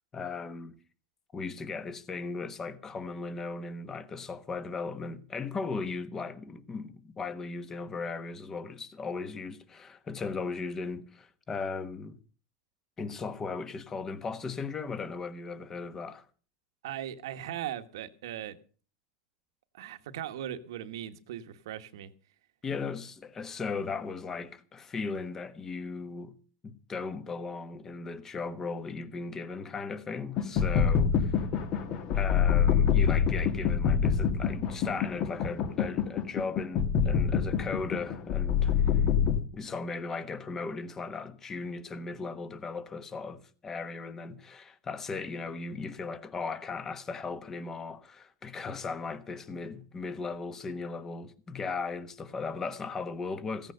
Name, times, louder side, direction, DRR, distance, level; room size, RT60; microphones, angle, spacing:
voice 1, 0.1-0.8 1.3-12.2 13.0-16.3 22.6-26.4 26.6-31.4 32.1-39.0 39.5-53.7, left 4 dB, 20° left, 1.2 m, -37 dB
voice 2, 16.8-18.6 19.7-22.1, right 11 dB, 80° right, 1.3 m, -38 dB
sound 1, 30.4-39.4, left 7 dB, 45° left, 1.7 m, -26 dB
15.5 x 9.1 x 6.6 m
supercardioid pair, 140°, 2 cm